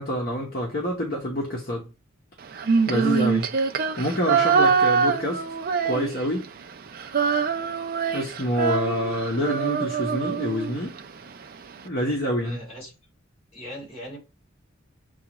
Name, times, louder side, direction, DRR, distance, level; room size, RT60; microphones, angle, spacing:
voice 1, 0.0-1.9 2.9-3.5 4.0-5.4 5.8-6.5 8.1-10.9 11.8-12.6, equal, 45° left, 0.9 m, -27 dB
Female singing, 2.5-6.5 6.7-11.0, right 5 dB, 45° right, 0.4 m, -24 dB
voice 2, 12.4-12.9 13.5-14.2, equal, 30° left, 2.4 m, -39 dB
7.1 x 2.4 x 3.0 m
head